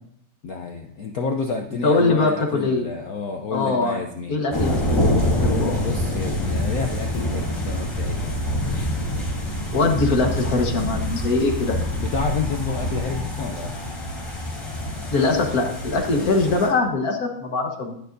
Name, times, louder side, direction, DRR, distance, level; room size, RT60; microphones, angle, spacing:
voice 1, 0.4-4.4 5.5-8.4 11.9-13.7, left 5 dB, 70° left, 4 dB, 0.8 m, -30 dB
voice 2, 1.8-2.9 3.5-4.0 4.3-5.0 5.4-5.8 9.7-11.8 15.1-17.9, left 3 dB, 45° left, 3 dB, 1.7 m, -22 dB
sound 1, 4.5-16.7, left 1 dB, 15° left, 2.5 m, -26 dB
18.5 x 6.6 x 2.6 m, 0.70 s
omnidirectional pair, 2.4 m